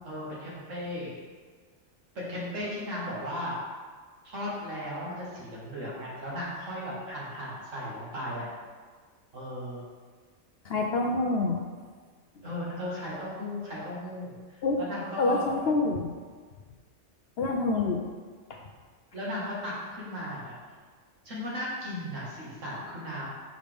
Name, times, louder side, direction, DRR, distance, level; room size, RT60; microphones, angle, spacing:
voice 1, 0.0-1.1 2.2-3.6 4.2-8.5 9.3-9.8 12.4-14.4 14.8-15.4 19.1-20.6 21.2-23.3, left 1 dB, 70° right, -6 dB, 2.1 m, -36 dB
voice 2, 10.6-11.6 14.6-14.8 15.2-16.2 17.4-18.0, left 3 dB, 65° left, 1 dB, 0.7 m, -26 dB
6.4 x 5.2 x 3.4 m, 1.5 s
omnidirectional pair, 1.4 m